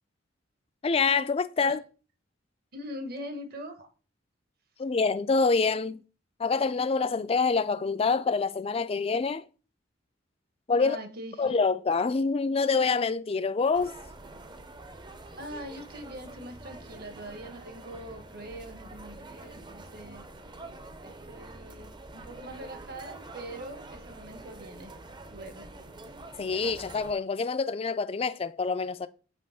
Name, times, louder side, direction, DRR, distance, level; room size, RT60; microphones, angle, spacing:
voice 1, 0.8-1.8 4.8-6.0 6.4-9.4 10.7-11.0 11.4-13.9 26.4-29.1, left 4 dB, 30° left, 0.4 m, -26 dB
voice 2, 2.7-3.9 10.8-11.5 15.4-20.3 21.0-25.0 25.3-25.7, equal, 55° right, 1.1 m, -42 dB
sound 1, 13.7-27.1, right 2 dB, 25° right, 0.6 m, -46 dB
7.4 x 3.1 x 5.7 m
head